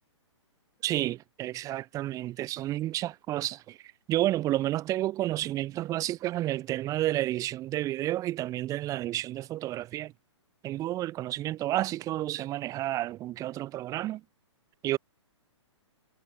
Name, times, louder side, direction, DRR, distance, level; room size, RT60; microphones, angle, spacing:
voice 1, 0.8-3.8 4.1-10.1 10.6-14.2 14.8-15.0, right 14 dB, 20° right, 1.1 m, -30 dB
hypercardioid pair, 135°, 16 cm